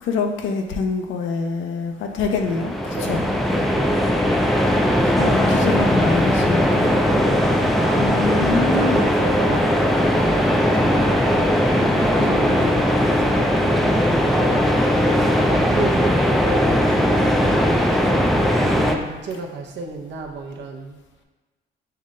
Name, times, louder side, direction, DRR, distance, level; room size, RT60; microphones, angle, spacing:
voice 1, 0.0-3.3 5.2-7.0 8.0-9.0 12.2-12.8, left 4 dB, 75° left, 4 dB, 0.5 m, -26 dB
sound 1, 2.3-19.0, equal, ahead, 0.4 m, -19 dB
voice 2, 2.9-4.0 7.1-11.3 11.8-14.7 15.2-18.2 18.5-21.0, right 3 dB, 60° right, 1 dB, 0.7 m, -32 dB
5.6 x 2.1 x 3.7 m, 1.3 s
cardioid pair, 90°, 20 cm